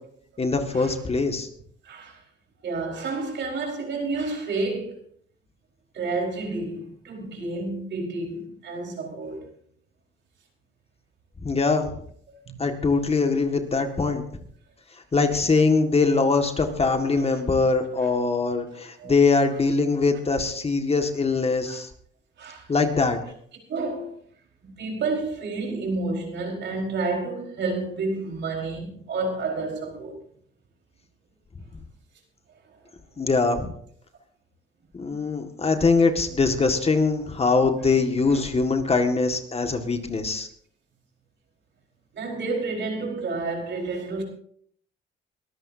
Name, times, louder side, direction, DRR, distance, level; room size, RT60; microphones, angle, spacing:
voice 1, 0.4-1.5 11.4-11.9 12.6-14.2 15.1-21.9 22.7-23.2 33.2-33.7 34.9-40.5, left 4 dB, 30° left, 1.9 m, -22 dB
voice 2, 1.8-2.2 2.6-5.0 5.9-9.5 12.3-12.6 17.3-17.4 19.0-19.1 21.7-21.8 22.4-22.7 23.7-24.1 24.6-30.2 37.9-38.0 38.3-38.4 42.1-44.2, right 3 dB, 65° right, 4.6 m, -30 dB
22.5 x 13.5 x 2.8 m
cardioid pair, 90°, 20 cm